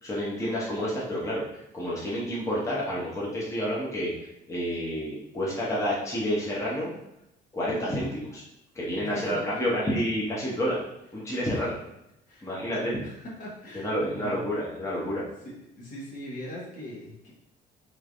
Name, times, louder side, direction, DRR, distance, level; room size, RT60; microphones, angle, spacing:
voice 1, 0.0-4.1 4.5-6.9 7.5-8.4 8.7-10.8 11.1-11.8 12.4-13.0 13.7-15.2, equal, 15° left, -6 dB, 0.9 m, -29 dB
voice 2, 12.3-14.4 15.4-17.3, equal, 50° left, -4 dB, 1.2 m, -41 dB
3.2 x 3.2 x 2.5 m, 0.83 s
cardioid pair, 110°, 17 cm